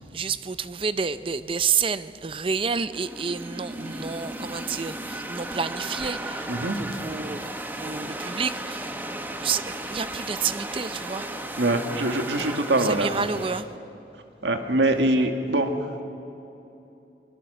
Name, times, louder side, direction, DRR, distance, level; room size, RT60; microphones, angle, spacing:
voice 1, 0.0-8.9 9.4-11.3 12.4-12.5 12.8-13.7, right 6 dB, 30° right, 0.5 m, -29 dB
sound 1, 2.9-13.6, right 1 dB, 10° right, 1.2 m, -35 dB
voice 2, 6.5-6.8 11.6-13.3 14.4-16.0, right 1 dB, 80° right, 2.0 m, -24 dB
24.5 x 21.0 x 6.7 m
head